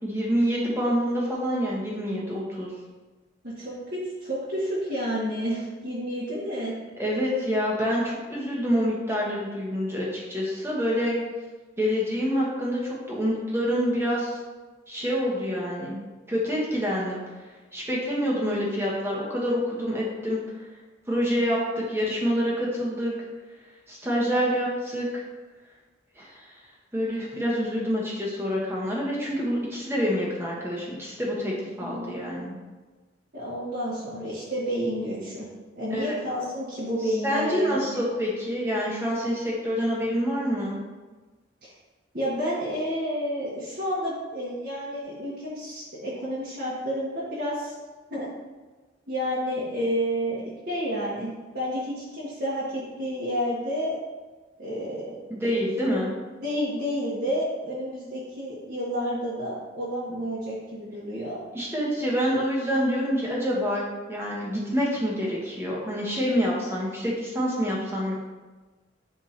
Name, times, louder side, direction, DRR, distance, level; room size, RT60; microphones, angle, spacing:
voice 1, 0.0-2.7 7.0-11.2 11.8-14.4 14.9-16.0 16.3-17.2 17.7-20.4 21.1-23.1 23.9-25.2 26.2-26.5 26.9-32.6 35.9-36.1 37.1-40.8 55.3-56.1 61.5-63.8 64.1-68.2, equal, 15° right, -4 dB, 1.3 m, -27 dB
voice 2, 3.4-6.7 31.8-32.2 33.3-35.5 35.7-38.0 41.6-41.7 42.1-47.7 48.1-48.3 49.1-51.3 51.5-54.0 54.6-55.3 56.4-61.4, equal, 55° right, -9 dB, 1.4 m, -30 dB
10.5 x 3.6 x 2.9 m, 1.3 s
head